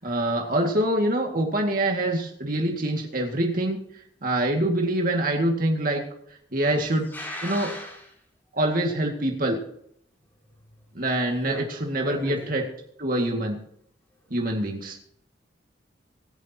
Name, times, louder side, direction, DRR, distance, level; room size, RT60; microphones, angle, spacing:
voice 1, 0.0-3.8 4.2-6.0 6.5-7.1 7.4-7.7 8.5-9.6 11.0-12.6 13.0-13.6 14.3-15.0, right 1 dB, 50° right, 1 dB, 2.2 m, -25 dB
voice 2, 6.6-8.1 10.4-10.5 11.0-12.5 14.2-14.3, left 1 dB, 10° left, -3 dB, 5.5 m, -38 dB
25.0 x 10.5 x 2.9 m, 0.70 s
head